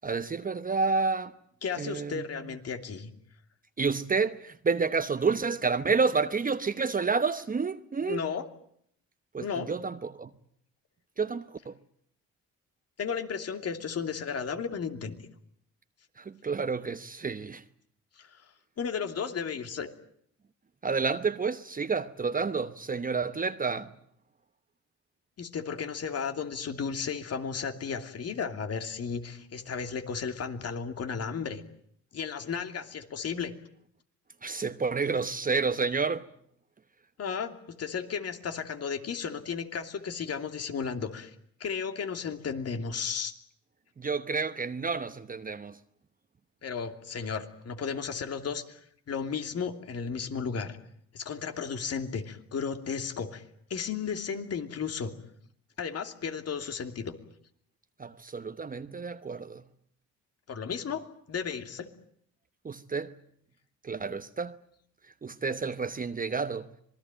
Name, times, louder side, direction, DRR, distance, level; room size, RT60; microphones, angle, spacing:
voice 1, 0.0-1.3 1.8-2.2 3.8-8.2 9.3-10.3 11.2-11.8 16.2-17.6 20.8-23.9 34.4-36.3 44.0-45.8 58.0-59.6 62.6-63.2 63.8-64.6 65.2-66.7, right 4 dB, 30° right, 1.0 m, -30 dB
voice 2, 1.6-3.1 8.0-8.4 9.4-9.7 13.0-15.2 18.2-18.3 18.8-19.9 25.4-31.6 32.1-33.5 37.2-41.3 41.6-43.3 46.6-48.8 49.1-50.8 51.1-53.4 53.7-55.1 55.8-57.1 60.5-61.0 61.3-61.9, left 6 dB, 55° left, 2.8 m, -34 dB
26.5 x 21.0 x 9.0 m
cardioid pair, 90°, 30 cm